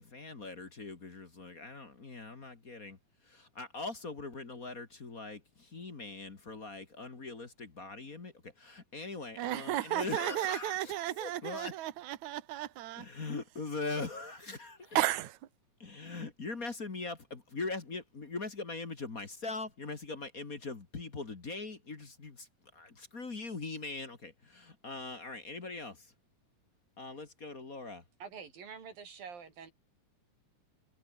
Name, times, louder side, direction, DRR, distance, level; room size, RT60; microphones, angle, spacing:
voice 1, 0.0-3.0 3.2-11.7 13.0-15.0 15.8-26.1 27.0-28.0, left 3 dB, 30° left, 2.1 m, -41 dB
voice 2, 9.4-13.1 14.9-15.4, right 14 dB, 65° right, 2.6 m, -33 dB
voice 3, 28.2-29.7, right 6 dB, 85° right, 5.9 m, -46 dB
omnidirectional pair, 3.9 m